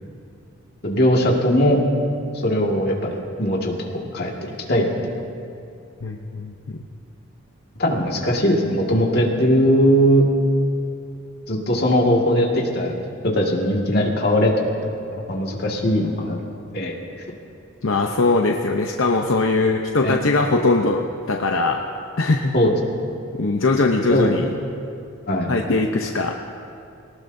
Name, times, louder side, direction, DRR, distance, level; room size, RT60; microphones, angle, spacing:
voice 1, 0.8-1.8 2.4-4.9 7.8-10.2 11.5-12.9 13.2-16.4 16.7-17.0 20.0-20.2 22.5-22.7 24.1-24.3 25.3-25.5, equal, 50° left, -1 dB, 2.0 m, -20 dB
voice 2, 6.0-6.8 17.8-21.8 22.2-22.5 23.4-24.5 25.5-26.4, left 3 dB, 75° left, 2 dB, 0.8 m, -21 dB
23.0 x 18.5 x 2.7 m, 2.6 s
head